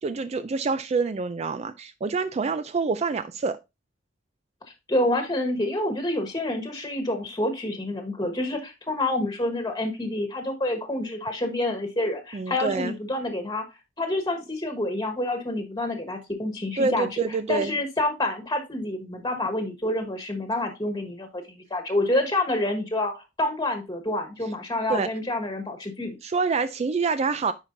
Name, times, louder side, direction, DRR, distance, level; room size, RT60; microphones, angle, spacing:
voice 1, 0.0-3.6 12.3-12.9 16.8-17.7 24.9-25.1 26.2-27.5, right 4 dB, 35° right, 0.4 m, -26 dB
voice 2, 4.9-13.6 14.0-17.2 17.5-26.2, left 1 dB, 20° left, 1.4 m, -28 dB
9.9 x 4.6 x 2.6 m
head